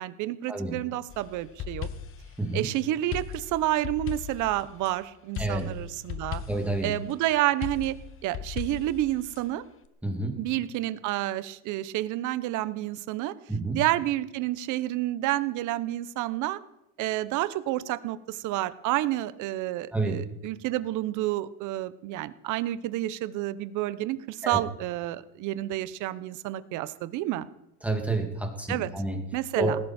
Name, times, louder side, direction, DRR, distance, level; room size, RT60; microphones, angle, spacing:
voice 1, 0.0-1.9 2.5-6.4 6.8-8.0 8.2-9.6 10.4-13.3 13.7-16.6 17.0-27.5 28.7-28.9 29.3-29.8, right 15 dB, 55° right, 14 dB, 1.1 m, -29 dB
sound 1, 1.1-2.3 3.1-4.9 5.3-6.8 7.6-9.4, left 9 dB, 35° left, 1.2 m, -37 dB
voice 2, 2.4-2.7 5.4-5.7 6.5-6.9 10.0-10.4 13.5-13.8 19.9-20.2 24.4-24.6 27.8-29.2 29.6-29.8, right 2 dB, 5° right, 2 dB, 2.1 m, -29 dB
19.0 x 16.5 x 4.4 m, 0.85 s
cardioid pair, 155°, 35 cm